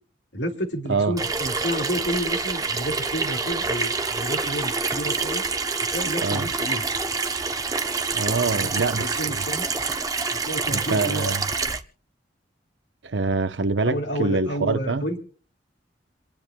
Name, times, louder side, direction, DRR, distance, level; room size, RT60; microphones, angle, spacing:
voice 1, 0.3-5.4 5.9-6.8 8.6-8.7 8.9-9.7 10.4-11.3 13.8-15.2, equal, 70° left, 2.6 m, -30 dB
Water tap faucet / Sink (filling or washing), 1.2-11.8, right 4 dB, 20° right, 0.8 m, -27 dB
voice 2, 8.1-9.5 10.7-11.5 13.0-15.1, right 3 dB, 85° right, 0.9 m, -25 dB
27.5 x 10.5 x 2.3 m
head